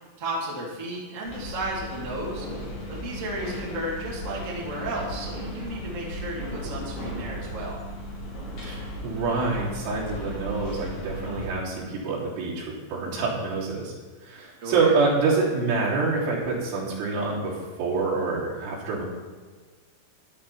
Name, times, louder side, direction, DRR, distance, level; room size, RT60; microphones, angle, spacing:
voice 1, 0.2-2.5 2.9-7.8 14.6-15.0, right 1 dB, 20° right, -5 dB, 2.2 m, -33 dB
sound 1, 1.2-11.5, left 1 dB, 45° left, 4.1 m, -36 dB
voice 2, 8.6-13.9 14.2-19.0, right 4 dB, 75° right, -6 dB, 5.8 m, -26 dB
13.5 x 11.5 x 4.3 m, 1.4 s
omnidirectional pair, 5.7 m